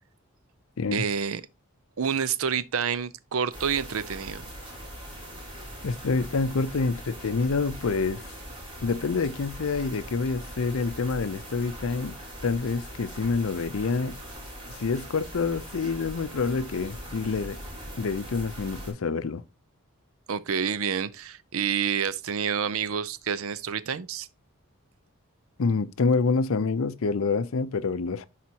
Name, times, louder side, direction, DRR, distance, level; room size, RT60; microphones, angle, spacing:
voice 1, 0.9-1.4 2.0-4.4 20.3-24.3, right 7 dB, 75° right, 0.5 m, -28 dB
sound 1, 3.5-18.9, equal, 25° right, 3.2 m, -41 dB
voice 2, 5.8-8.2 8.8-12.1 12.4-14.2 14.7-17.6 18.0-19.4 25.6-28.3, left 4 dB, 70° left, 0.5 m, -27 dB
10.5 x 4.2 x 2.8 m
head